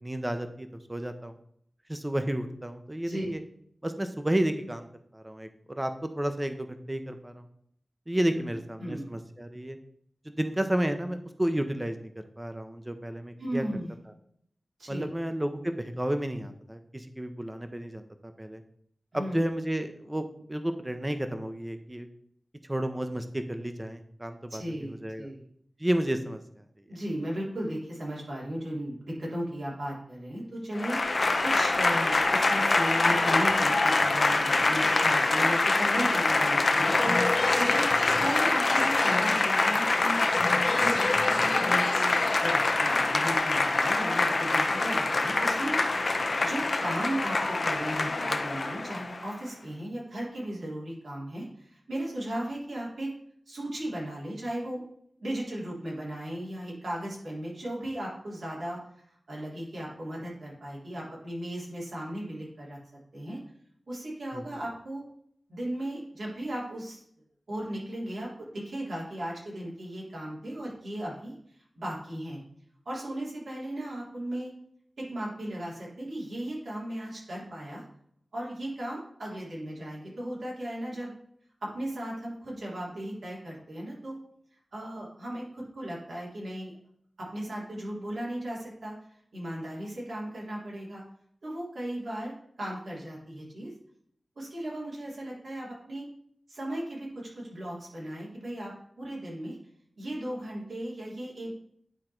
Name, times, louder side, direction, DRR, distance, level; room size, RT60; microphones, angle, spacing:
voice 1, 0.0-1.4 1.9-3.4 3.8-4.9 5.1-7.5 8.1-9.8 10.2-12.1 12.4-13.6 14.9-18.6 19.1-22.1 22.7-25.3 25.8-26.8 64.3-64.4, right 1 dB, 15° right, 7 dB, 0.8 m, -32 dB
voice 2, 13.4-13.9 14.8-15.1 19.1-19.5 24.5-25.4 26.9-37.9 38.2-40.2 40.7-41.1 41.4-45.8 46.4-53.1 53.5-54.8 55.2-62.8 63.1-63.4 63.9-65.0 65.5-67.0 67.5-72.4 72.9-74.5 75.0-77.8 78.3-81.1 81.6-84.2 84.7-86.7 87.2-88.9 89.3-91.0 91.4-92.3 92.6-93.7 94.4-96.1 96.5-98.7 99.0-99.6 100.0-101.5, right 1 dB, 80° right, -5 dB, 3.4 m, -36 dB
Applause / Crowd, 30.7-49.3, left 3 dB, 60° left, 0.7 m, -25 dB
9.9 x 3.8 x 4.5 m, 0.67 s
wide cardioid pair, 60°, 0 cm